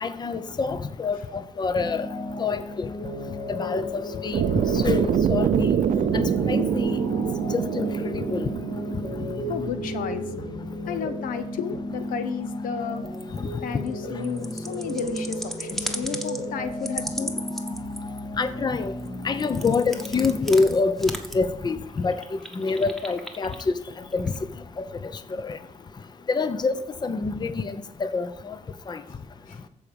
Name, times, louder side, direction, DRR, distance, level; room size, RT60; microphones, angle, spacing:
voice 1, 0.0-2.1 2.4-2.9 3.5-4.4 4.7-5.8 6.1-7.0 7.7-8.5 18.4-18.9 19.2-23.7 24.1-24.3 24.8-24.9 25.3-25.6 26.3-28.6 28.9-29.0, left 4 dB, 30° left, 11 dB, 0.7 m, -26 dB
sound 1, 1.8-20.3, left 1 dB, 55° left, 2.6 m, -34 dB
sound 2, 4.3-10.4, right 9 dB, 60° right, 0.5 m, -25 dB
voice 2, 9.5-10.4 10.9-13.1 13.6-17.4 29.5-29.6, left 7 dB, 85° left, 10 dB, 0.9 m, -33 dB
sound 3, 12.9-13.5 13.9-14.0 14.2-16.4 16.8-18.4 18.8-21.5 22.0-23.8 24.1-24.4, equal, ahead, 1.2 m, -36 dB
14.0 x 4.8 x 5.2 m, 0.82 s
cardioid pair, 95°, 14 cm